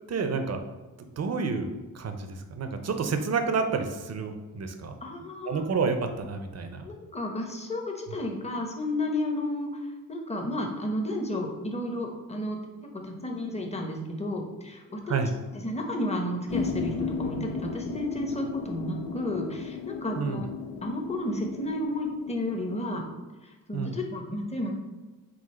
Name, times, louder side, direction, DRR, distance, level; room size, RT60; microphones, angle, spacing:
voice 1, 0.1-0.6 1.0-4.9 5.4-6.8 15.1-15.3 20.1-20.5 23.7-24.0, right 4 dB, 40° right, 7 dB, 0.7 m, -29 dB
voice 2, 5.0-5.6 6.8-9.8 10.1-12.6 12.9-15.2 15.5-20.4 20.8-23.0 23.7-24.7, left 1 dB, 15° left, 2 dB, 1.0 m, -32 dB
sound 1, 16.5-23.0, left 5 dB, 65° left, 0.5 m, -35 dB
3.9 x 2.3 x 4.4 m, 1.2 s
supercardioid pair, 40°, 41 cm